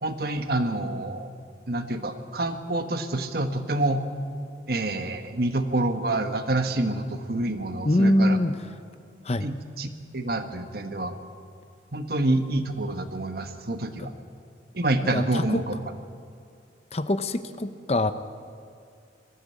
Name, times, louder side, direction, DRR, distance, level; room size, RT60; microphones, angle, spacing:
voice 1, 0.0-1.3 1.7-4.0 4.7-8.4 9.4-9.9 10.1-11.2 11.9-14.1 14.7-15.7, right 2 dB, 55° right, 7 dB, 1.3 m, -27 dB
voice 2, 7.8-8.6 9.2-9.5 14.0-14.1 15.1-15.6 16.9-18.1, left 1 dB, 35° left, 11 dB, 0.7 m, -23 dB
21.0 x 14.5 x 8.6 m, 2.3 s
head